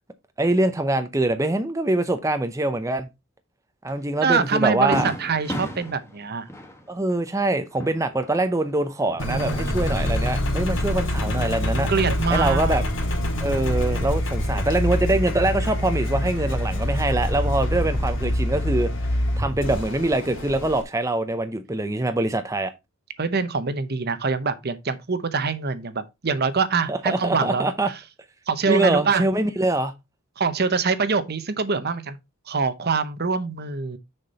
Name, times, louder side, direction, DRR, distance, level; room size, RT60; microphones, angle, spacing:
voice 1, 0.4-3.1 3.8-5.1 6.9-11.9 12.3-12.8 13.4-18.9 19.4-22.7 26.9-27.9 28.7-29.9, right 2 dB, 15° right, 0.6 m, -24 dB
Fireworks, 3.9-4.0 4.4-4.5 4.9-8.7 9.0-9.9, equal, 15° left, 1.2 m, -35 dB
voice 2, 4.2-6.5 11.9-12.7 23.2-28.0 28.5-29.2 30.4-32.2 32.5-34.0, right 5 dB, 50° right, 0.9 m, -24 dB
Engine, 9.2-20.8, left 1 dB, 65° left, 2.0 m, -25 dB
6.6 x 5.9 x 4.1 m
head